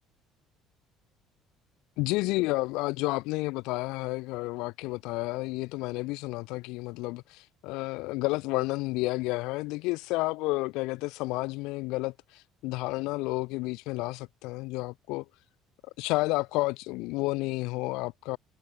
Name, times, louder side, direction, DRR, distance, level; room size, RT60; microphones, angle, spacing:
voice 1, 2.0-15.2 16.0-18.4, left 22 dB, 80° left, 3.9 m, -31 dB
cardioid pair, 160°, 0 cm